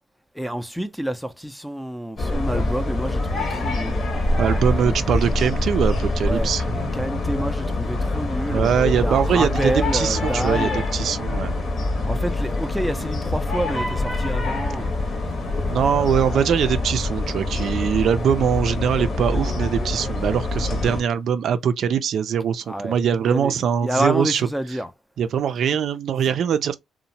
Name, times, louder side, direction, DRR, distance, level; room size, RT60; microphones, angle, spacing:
voice 1, 0.4-4.0 4.8-4.9 6.3-6.5 6.9-10.8 12.1-14.9 15.5-15.8 22.7-23.0 23.3-23.5 23.8-24.9, right 1 dB, ahead, 0.4 m, -28 dB
sound 1, 2.2-21.0, left 2 dB, 45° left, 0.9 m, -25 dB
voice 2, 4.4-6.9 8.5-11.5 15.7-24.5 25.2-26.7, right 8 dB, 65° right, 0.4 m, -22 dB
2.8 x 2.1 x 2.7 m
cardioid pair, 90°, 0 cm